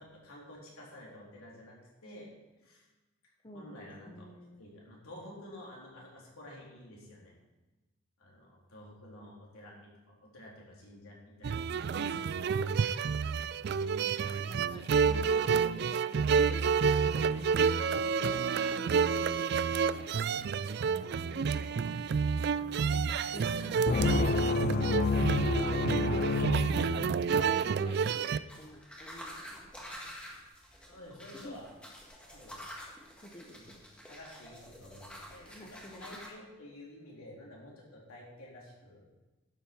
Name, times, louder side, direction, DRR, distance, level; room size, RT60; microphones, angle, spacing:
voice 1, 0.0-1.8 2.0-2.3 2.6-2.9 3.5-4.3 4.6-7.3 8.2-13.2 30.9-31.7 32.3-32.6 33.5-33.7 34.1-39.0, left 1 dB, 80° left, -4 dB, 3.7 m, -51 dB
voice 2, 3.4-3.8 4.0-4.6 14.0-17.7 18.2-19.9 20.9-21.5 22.5-23.0 23.3-23.8 25.1-25.7 27.6-30.2 31.4-31.6 33.2-33.8 35.4-36.2, left 1 dB, 25° left, 1 dB, 0.9 m, -50 dB
sound 1, 11.4-28.4, right 6 dB, 50° right, 0.3 m, -29 dB
sound 2, 23.9-27.4, left 4 dB, 40° left, 0.3 m, -29 dB
sound 3, 28.5-36.3, equal, 5° left, 1.7 m, -48 dB
12.0 x 8.5 x 4.5 m, 1.1 s
head